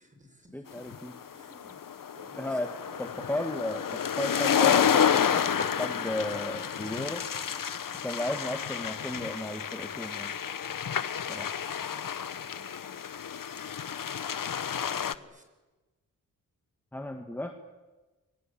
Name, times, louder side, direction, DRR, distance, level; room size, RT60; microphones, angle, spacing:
voice 1, 0.0-0.9 1.3-1.8 2.2-3.2 12.1-13.0 14.9-15.4, equal, 20° right, 5 dB, 5.8 m, -56 dB
voice 2, 0.5-1.1 2.4-2.7 3.0-5.4 5.8-7.2 8.0-10.3 11.3-11.5 16.9-17.5, left 1 dB, 5° left, 5 dB, 1.7 m, -34 dB
sound 1, 0.9-15.1, left 8 dB, 65° left, 1.0 m, -30 dB
sound 2, 2.0-3.8 4.1-4.7 5.0-5.1 5.5-12.4, left 2 dB, 25° left, 3.6 m, -51 dB
29.5 x 23.5 x 8.6 m, 1.2 s
wide cardioid pair, 120°, 35 cm